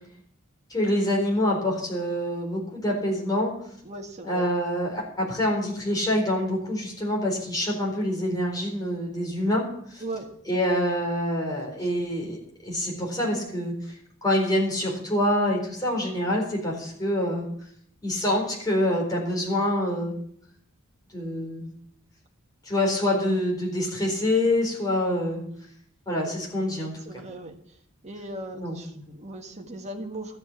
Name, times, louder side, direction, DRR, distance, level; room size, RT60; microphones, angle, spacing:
voice 1, 0.7-3.5 4.2-9.6 9.9-10.0 10.4-13.7 14.2-17.5 18.0-20.2 21.1-21.7 22.6-25.4 26.1-27.2 28.5-29.1, left 1 dB, 20° left, -2 dB, 4.2 m, -26 dB
voice 2, 3.8-4.5 10.0-10.3 26.2-26.4 26.7-27.6 28.0-30.4, right 1 dB, 30° right, 2 dB, 1.6 m, -38 dB
13.0 x 7.7 x 7.2 m, 0.65 s
head